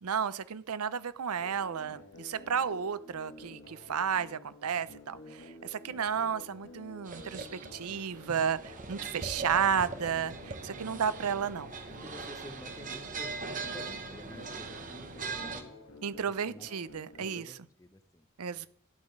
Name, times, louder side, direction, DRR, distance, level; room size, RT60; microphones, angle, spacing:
voice 1, 0.0-11.7 16.0-17.6 18.4-18.7, right 7 dB, 80° right, 16 dB, 0.6 m, -32 dB
sound 1, 1.4-17.4, left 2 dB, 60° left, 1.4 m, -51 dB
sound 2, 7.0-15.6, right 4 dB, 35° right, 1.0 m, -41 dB
voice 2, 12.0-15.7 16.4-16.7 17.2-18.3 18.5-18.6, left 1 dB, 15° left, 9 dB, 0.7 m, -50 dB
12.0 x 8.2 x 3.2 m, 0.63 s
head